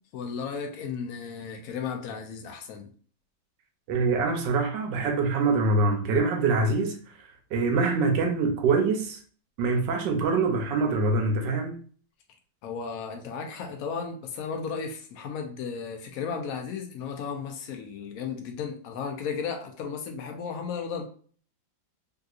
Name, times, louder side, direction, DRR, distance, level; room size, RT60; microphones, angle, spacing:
voice 1, 0.1-2.9 12.6-21.1, left 6 dB, 65° left, 0.9 m, -34 dB
voice 2, 3.9-7.0 7.5-9.2 9.6-11.8, right 3 dB, 70° right, 1.3 m, -24 dB
3.5 x 2.8 x 2.4 m
omnidirectional pair, 2.1 m